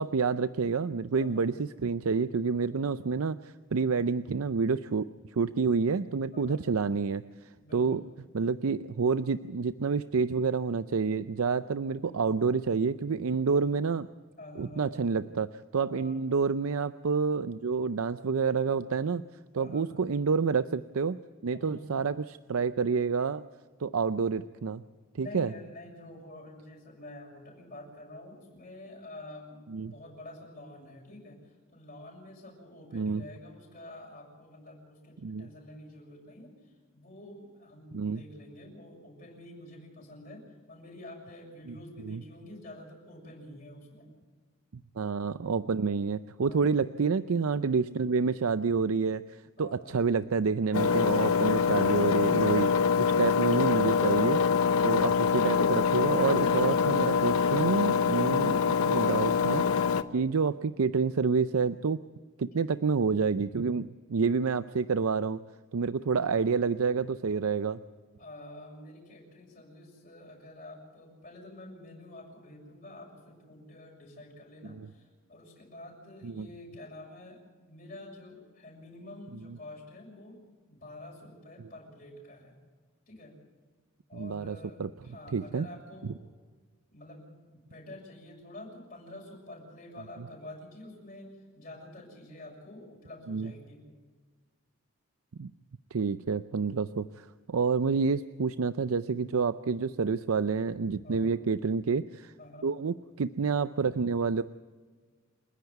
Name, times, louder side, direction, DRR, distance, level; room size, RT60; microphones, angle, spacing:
voice 1, 0.0-7.2 7.7-8.0 8.3-14.1 14.6-19.2 19.5-21.2 21.4-23.4 23.8-24.8 25.1-25.5 29.7-29.9 32.9-33.2 35.2-35.5 37.9-38.2 42.0-42.2 45.0-54.4 54.8-59.8 60.1-62.0 62.4-65.4 65.7-67.8 74.7-74.9 76.2-76.5 79.5-79.6 84.1-84.9 85.3-85.7 93.3-93.5 95.4-95.5 95.9-102.3 102.6-104.4, right 5 dB, 85° right, 13 dB, 0.5 m, -28 dB
voice 2, 1.2-1.5 3.8-4.0 6.3-6.6 7.6-8.0 14.4-15.0 15.9-16.3 19.5-19.9 21.5-21.9 25.1-44.1 46.5-46.8 49.6-50.0 68.2-77.4 77.7-80.4 80.7-82.5 83.1-83.4 84.1-86.2 86.9-93.8 97.8-98.0 101.0-101.3 102.4-102.7, left 1 dB, 40° left, -2 dB, 6.9 m, -48 dB
Engine, 50.7-60.0, left 6 dB, 90° left, 0.9 m, -25 dB
28.5 x 10.5 x 9.4 m, 1.4 s
head